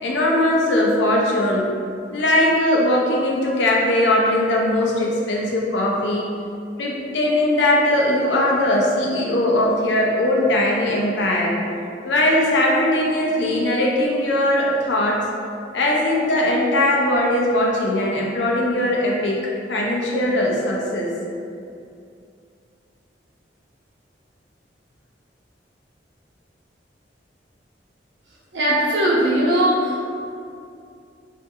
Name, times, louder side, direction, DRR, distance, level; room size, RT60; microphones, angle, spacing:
voice 1, 0.0-1.7 2.1-6.3 6.8-11.5 12.0-15.2 15.7-21.1, left 1 dB, 80° left, -2 dB, 0.6 m, -20 dB
voice 2, 28.5-30.0, right 1 dB, 85° right, -5 dB, 0.8 m, -19 dB
3.7 x 2.5 x 2.6 m, 2.4 s
head